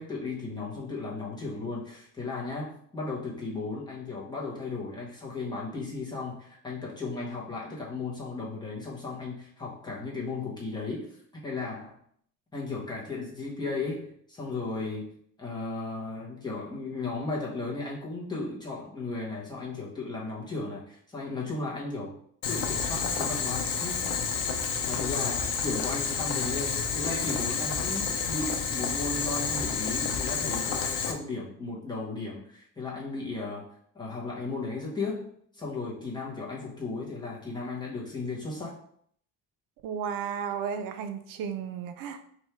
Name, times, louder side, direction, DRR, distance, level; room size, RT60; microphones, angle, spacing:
voice 1, 0.0-12.0 12.5-22.2 22.5-24.1 24.9-33.7 33.9-35.3 35.5-38.8, left 3 dB, 15° left, -5 dB, 1.0 m, -35 dB
Boiling, 22.4-31.1, left 6 dB, 75° left, 0.7 m, -30 dB
voice 2, 39.8-42.2, right 7 dB, 85° right, 8 dB, 0.5 m, -33 dB
3.4 x 2.6 x 4.3 m, 0.62 s
cardioid pair, 165°, 33 cm